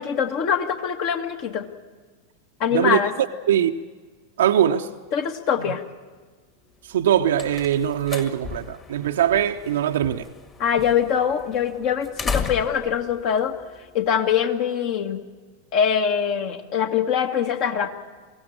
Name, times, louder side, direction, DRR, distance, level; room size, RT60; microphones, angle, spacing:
voice 1, 0.0-1.7 2.6-3.1 5.1-5.8 10.6-13.5 13.9-15.2 15.7-17.9, left 8 dB, 45° left, 1.7 m, -23 dB
voice 2, 4.4-4.9 6.9-10.3, right 10 dB, 60° right, 0.7 m, -21 dB
sound 1, 6.9-14.3, left 5 dB, 20° left, 1.9 m, -36 dB
22.5 x 16.5 x 8.6 m
figure-of-eight pair, 90°, 0 cm